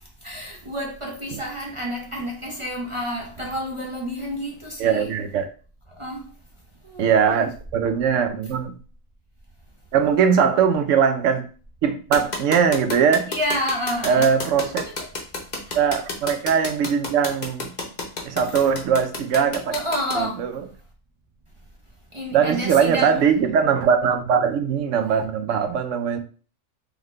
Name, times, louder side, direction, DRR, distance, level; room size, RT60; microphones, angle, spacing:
voice 1, 0.2-5.1 6.0-6.3 6.8-7.4 13.3-14.3 14.9-15.1 15.7-15.8 18.4-18.6 19.7-20.4 22.1-23.2, equal, 30° right, 0.6 m, -29 dB
voice 2, 4.8-5.5 7.0-8.7 9.9-11.5 11.8-13.3 14.0-14.8 15.7-17.7 18.2-19.7 20.1-20.6 22.3-26.2, right 7 dB, 70° right, 0.9 m, -20 dB
sound 1, 12.1-20.1, left 3 dB, 40° left, 0.8 m, -30 dB
3.8 x 3.4 x 3.1 m
omnidirectional pair, 1.4 m